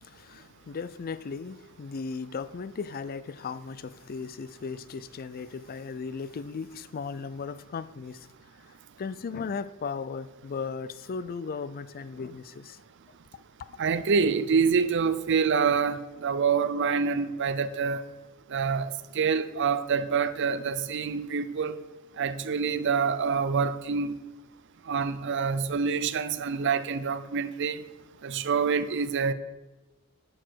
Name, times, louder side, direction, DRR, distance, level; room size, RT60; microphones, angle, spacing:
voice 1, 0.0-8.3 9.0-12.8, left 5 dB, 40° left, 0.4 m, -36 dB
voice 2, 13.8-18.0 18.5-21.7 22.2-24.1 24.9-27.8 28.2-29.3, right 5 dB, 55° right, 0.5 m, -26 dB
11.0 x 6.2 x 4.6 m
head